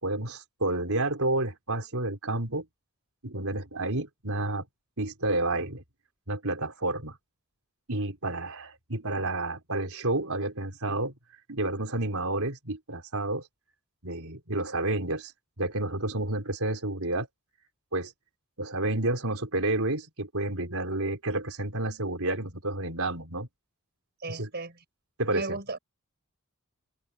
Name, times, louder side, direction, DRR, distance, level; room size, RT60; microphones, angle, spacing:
voice 1, 0.0-2.6 3.2-4.7 5.0-5.8 6.3-7.2 7.9-11.1 11.5-13.5 14.0-15.3 15.6-17.3 17.9-18.1 18.6-23.5 24.3-24.5 25.2-25.6, right 2 dB, 70° right, 4.9 m, -30 dB
voice 2, 24.2-24.8 25.3-25.8, right 3 dB, 50° right, 5.9 m, -35 dB
open air
head